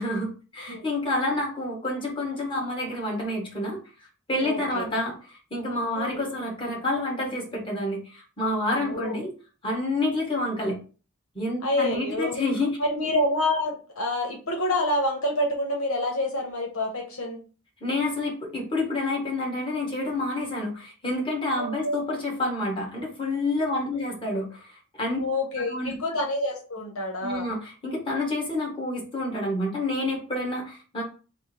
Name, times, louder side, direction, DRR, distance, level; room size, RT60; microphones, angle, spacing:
voice 1, 0.0-9.3 9.6-10.8 11.3-12.8 13.0-13.1 17.8-25.2 25.7-26.0 27.2-31.0, left 2 dB, 25° left, -4 dB, 1.5 m, -28 dB
voice 2, 4.4-4.9 5.9-6.2 8.7-9.1 11.6-12.4 12.8-17.4 21.5-22.0 25.2-27.5, left 1 dB, 75° left, 0 dB, 1.1 m, -27 dB
3.5 x 2.2 x 4.4 m, 0.36 s
head